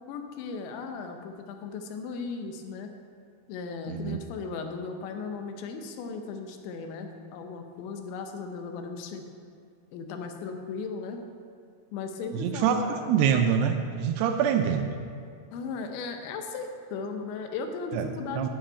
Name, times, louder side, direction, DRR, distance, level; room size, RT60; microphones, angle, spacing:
voice 1, 0.1-2.9 3.5-9.2 9.9-11.2 11.9-13.1 15.5-18.5, left 4 dB, 80° left, 5 dB, 3.2 m, -36 dB
voice 2, 3.9-4.2 12.3-12.8 13.1-14.9 17.9-18.5, right 8 dB, 85° right, 5 dB, 2.3 m, -25 dB
9.6 x 6.2 x 8.6 m, 2.2 s
omnidirectional pair, 5.2 m